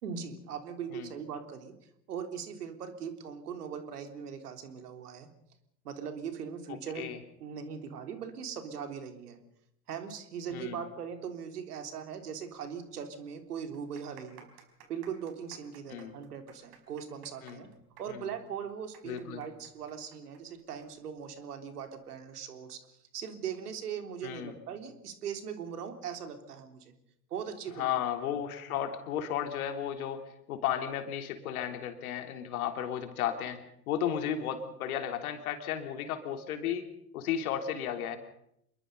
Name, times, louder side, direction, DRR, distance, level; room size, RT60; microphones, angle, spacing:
voice 1, 0.0-1.7 2.1-5.3 5.8-7.1 7.4-9.4 9.9-14.5 14.9-17.7 18.0-26.9 27.3-28.0, right 7 dB, 70° right, 7 dB, 3.6 m, -40 dB
voice 2, 10.5-10.8 15.9-16.1 17.4-17.6 18.1-18.3 19.0-19.4 24.2-24.5 27.8-33.6 33.9-36.9 37.1-38.2, left 9 dB, 65° left, 6 dB, 3.4 m, -34 dB
sound 1, 12.9-13.0 13.6-20.9 21.2-21.3 22.0-22.3, right 9 dB, 50° right, 5.1 m, -56 dB
27.0 x 22.5 x 5.5 m, 0.77 s
figure-of-eight pair, 85°, 47 cm